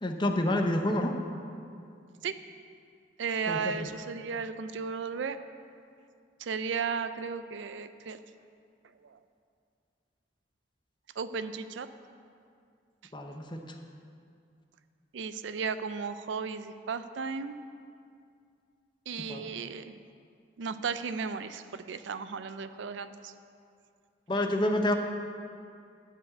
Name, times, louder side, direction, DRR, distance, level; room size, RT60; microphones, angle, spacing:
voice 1, 0.0-1.2 3.5-3.8 13.1-13.6 19.3-19.4 24.3-24.9, left 1 dB, 25° left, 4 dB, 0.7 m, -28 dB
voice 2, 3.2-5.4 6.4-8.2 11.2-11.9 15.1-17.6 19.1-19.9 20.6-23.3, right 5 dB, 80° right, 11 dB, 0.4 m, -35 dB
11.5 x 4.8 x 8.0 m, 2.3 s
head